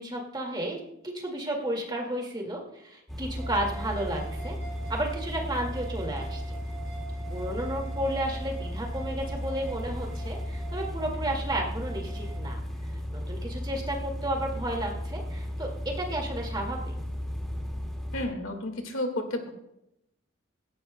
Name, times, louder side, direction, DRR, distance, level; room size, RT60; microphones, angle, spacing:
voice 1, 0.0-4.5 4.9-6.4 7.3-12.6 13.1-15.7 16.0-16.9, right 1 dB, 20° right, 1 dB, 2.0 m, -32 dB
sound 1, 3.1-18.3, left 1 dB, ahead, 2.0 m, -35 dB
sound 2, 3.4-12.4, right 7 dB, 40° left, 3.7 m, -46 dB
voice 2, 18.1-19.5, left 1 dB, 70° left, 4 dB, 1.9 m, -31 dB
16.5 x 16.0 x 2.2 m, 0.86 s
head